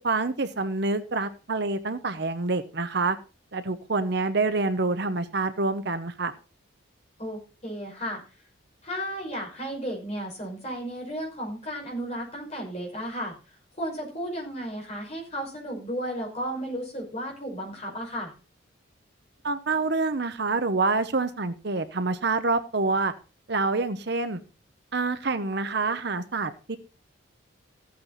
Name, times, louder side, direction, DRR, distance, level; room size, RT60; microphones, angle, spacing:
voice 1, 0.0-3.2 3.5-6.3 19.4-23.1 23.5-24.4 24.9-26.8, right 3 dB, 55° right, 10 dB, 0.9 m, -27 dB
voice 2, 7.2-8.2 8.8-13.3 13.8-18.3, equal, 30° left, -1 dB, 5.6 m, -34 dB
15.0 x 8.7 x 4.1 m, 0.33 s
head